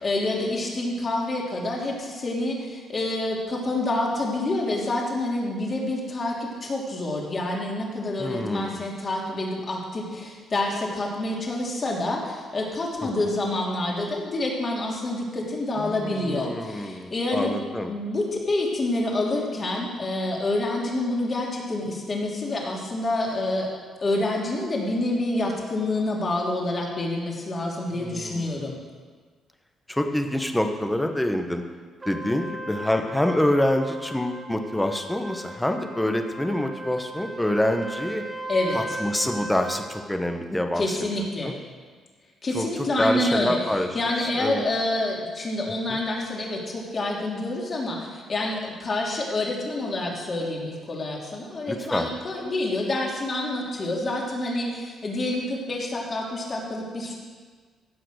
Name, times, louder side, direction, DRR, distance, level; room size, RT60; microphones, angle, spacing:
voice 1, 0.0-17.6 17.9-23.7 24.0-28.8 38.5-38.8 40.8-41.5 42.4-43.6 43.9-57.1, left 2 dB, 35° left, -3 dB, 3.1 m, -27 dB
voice 2, 8.2-8.8 13.0-13.1 15.8-17.9 27.9-28.6 29.9-31.6 32.0-38.2 38.7-41.6 42.5-44.6 45.9-46.0 51.7-52.1, left 1 dB, 10° left, 5 dB, 1.2 m, -26 dB
Trumpet, 32.0-39.8, right 1 dB, 25° right, 1.7 m, -37 dB
15.5 x 5.8 x 6.5 m, 1.5 s
cardioid pair, 90°, 0 cm